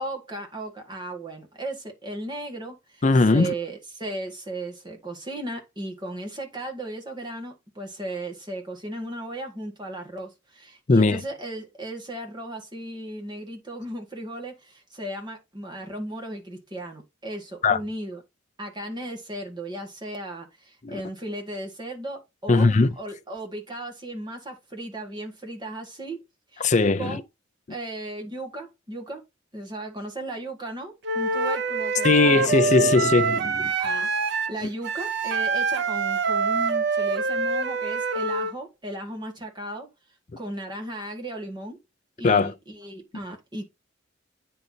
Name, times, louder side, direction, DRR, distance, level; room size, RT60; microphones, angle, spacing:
voice 1, 0.0-3.0 3.3-18.2 18.6-26.2 26.5-26.7 27.0-27.2 27.7-29.2 29.5-32.6 33.8-39.9 40.4-41.8 42.2-43.6, right 1 dB, 20° right, 2.0 m, -36 dB
voice 2, 3.0-3.5 10.9-11.2 17.6-17.8 20.8-21.0 22.5-22.9 26.6-27.2 32.0-33.7 42.2-42.5, left 3 dB, 35° left, 0.5 m, -19 dB
Wind instrument woodwind instrument, 31.0-38.5, right 4 dB, 60° right, 0.7 m, -25 dB
9.6 x 4.1 x 2.8 m
head